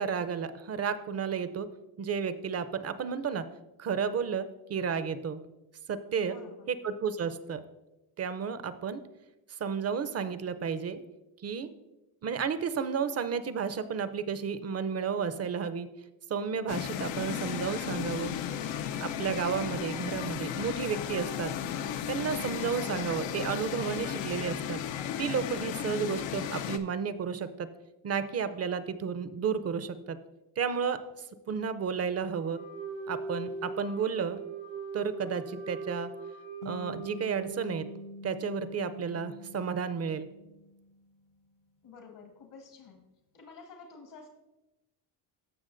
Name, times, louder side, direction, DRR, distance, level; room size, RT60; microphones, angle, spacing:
voice 1, 0.0-1.7 2.0-3.4 3.8-5.4 5.9-6.4 6.7-7.6 8.2-9.0 9.5-11.0 11.4-11.7 12.2-15.9 16.3-18.3 19.0-21.5 22.1-24.8 25.2-27.7 28.0-30.2 30.6-31.0 31.5-32.6 33.1-34.4 34.9-36.1 36.6-37.8 38.2-40.3, right 6 dB, 35° right, 12 dB, 0.5 m, -32 dB
voice 2, 6.2-6.7 41.8-43.1 43.3-44.3, left 4 dB, 70° left, 3 dB, 1.5 m, -50 dB
sound 1, 16.7-26.8, left 9 dB, 85° left, 0.6 m, -35 dB
Wind instrument woodwind instrument, 32.3-38.0, right 4 dB, 75° right, 1.1 m, -40 dB
sound 2, 36.6-41.3, left 1 dB, 45° left, 0.6 m, -46 dB
14.0 x 6.0 x 2.5 m, 0.97 s
cardioid pair, 105°, 44 cm